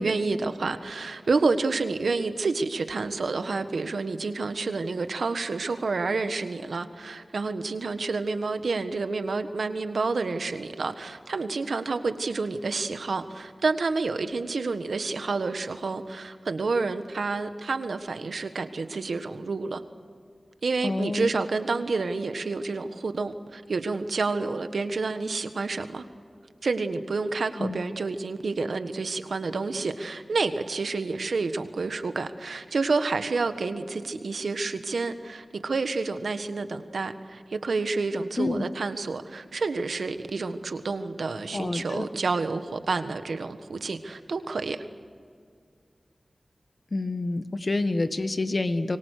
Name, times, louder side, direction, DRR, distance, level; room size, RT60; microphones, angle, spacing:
voice 1, 0.0-19.8 20.6-26.1 26.6-44.8, right 3 dB, 85° right, 9 dB, 1.4 m, -29 dB
voice 2, 20.8-21.3 27.6-27.8 38.4-38.7 41.5-42.1 46.9-49.0, left 2 dB, 55° left, 10 dB, 1.5 m, -28 dB
26.5 x 24.0 x 6.7 m, 2.1 s
wide cardioid pair, 50°, 0 cm